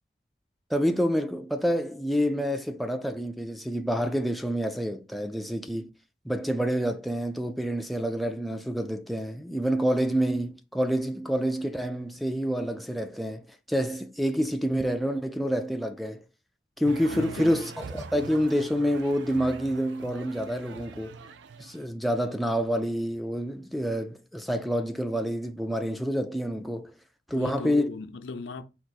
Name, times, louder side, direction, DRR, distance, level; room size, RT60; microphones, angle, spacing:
voice 1, 0.7-5.9 6.3-16.2 16.8-21.2 21.6-26.9 27.3-27.9, equal, ahead, 0.3 m, -28 dB
sound 1, 16.8-21.9, right 5 dB, 80° right, 0.4 m, -43 dB
voice 2, 17.1-17.6 27.3-28.6, left 3 dB, 80° left, 0.4 m, -36 dB
4.6 x 2.4 x 4.1 m
head